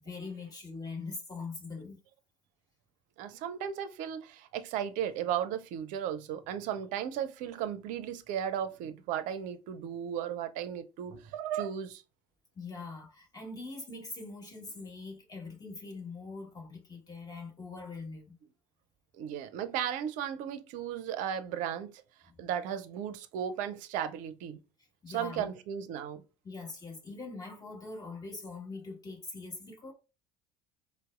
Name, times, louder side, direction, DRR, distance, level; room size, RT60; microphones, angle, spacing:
voice 1, 0.0-2.0 12.5-18.3 22.3-22.4 25.0-25.5 26.4-29.9, left 3 dB, 25° left, 1.4 m, -42 dB
voice 2, 3.2-12.0 19.2-22.0 22.4-24.6 25.1-26.2, right 9 dB, 55° right, 0.5 m, -35 dB
3.9 x 2.1 x 2.3 m
hypercardioid pair, 65°, 15 cm